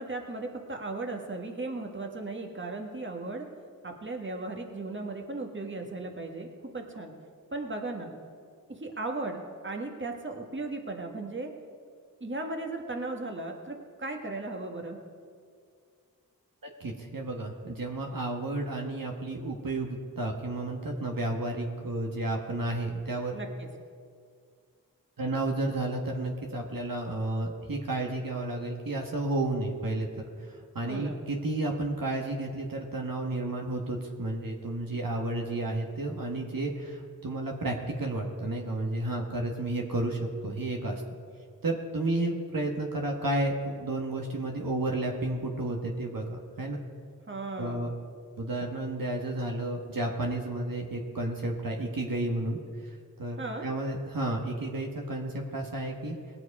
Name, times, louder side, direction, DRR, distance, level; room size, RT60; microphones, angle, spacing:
voice 1, 0.0-3.5 3.8-6.5 6.7-7.1 7.5-8.1 8.7-11.5 12.2-15.0 23.3-23.7 30.8-31.2 47.3-47.8 53.4-53.6, right 2 dB, 30° right, 2 dB, 1.6 m, -36 dB
voice 2, 16.8-23.4 25.2-41.0 41.6-46.8 47.6-47.9 48.4-52.6 53.2-56.2, right 2 dB, 65° right, 1 dB, 1.5 m, -32 dB
19.0 x 7.8 x 4.8 m, 2.2 s
cardioid pair, 40°, 36 cm